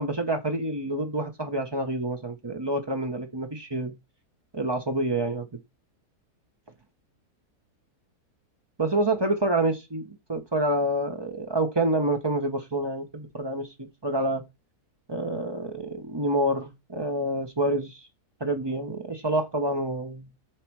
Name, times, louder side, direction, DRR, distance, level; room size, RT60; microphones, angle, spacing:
voice 1, 0.0-3.9 4.5-5.5 8.8-10.0 10.3-14.4 15.1-18.1 18.4-20.3, right 1 dB, 20° right, 0.8 m, -27 dB
7.7 x 3.3 x 4.7 m
omnidirectional pair, 1.7 m